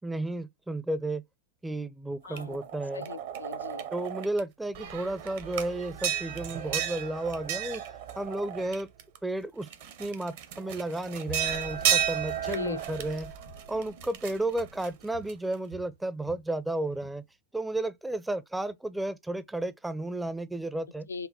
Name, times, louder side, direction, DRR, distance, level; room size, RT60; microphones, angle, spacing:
voice 1, 0.0-1.2 1.6-3.1 3.9-7.8 8.2-8.9 9.2-9.7 10.0-13.3 13.7-17.2 17.5-21.1, right 1 dB, 5° right, 0.4 m, -33 dB
voice 2, 2.2-2.6 2.9-3.8 12.3-12.8 21.1-21.3, left 5 dB, 75° left, 0.3 m, -38 dB
sound 1, 2.4-4.4 4.7-9.2 9.6-15.5, right 10 dB, 55° right, 0.7 m, -33 dB
Walk footsteps, 10.7-11.0 11.3-14.3 14.6-14.9 15.1-16.5 16.9-17.3, right 3 dB, 85° right, 1.8 m, -49 dB
5.2 x 2.1 x 2.8 m
figure-of-eight pair, 90°, 0 cm